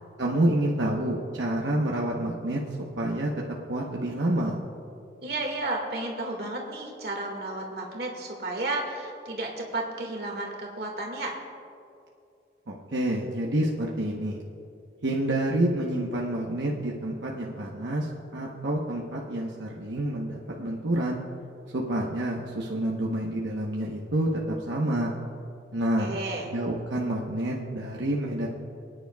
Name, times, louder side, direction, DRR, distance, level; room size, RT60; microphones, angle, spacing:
voice 1, 0.2-2.6 3.0-3.3 3.7-4.6 12.7-14.4 15.0-21.2 21.7-25.1 25.7-26.1 26.5-28.5, right 1 dB, 80° right, -3 dB, 1.0 m, -28 dB
voice 2, 5.2-11.4 26.0-26.5, right 2 dB, 60° right, 0 dB, 1.9 m, -32 dB
28.0 x 9.9 x 2.3 m, 2.6 s
head